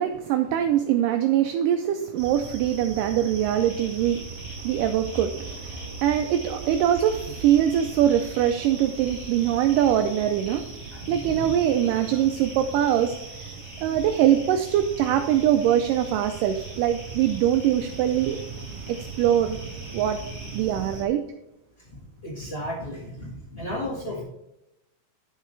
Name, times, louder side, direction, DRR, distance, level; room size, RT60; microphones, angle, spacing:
voice 1, 0.0-10.6 11.1-13.1 13.4-13.6 13.8-18.4 18.9-19.6 19.9-20.2 20.5-21.2, right 10 dB, 80° right, 6 dB, 2.0 m, -23 dB
sound 1, 2.2-21.0, right 4 dB, 45° right, 1.8 m, -39 dB
sound 2, 3.5-20.6, left 1 dB, 50° left, 4.7 m, -48 dB
voice 2, 5.5-6.0 10.9-11.5 12.1-12.2 21.8-24.2, left 1 dB, 80° left, -4 dB, 0.5 m, -35 dB
10.5 x 6.7 x 3.3 m, 0.91 s
omnidirectional pair, 4.2 m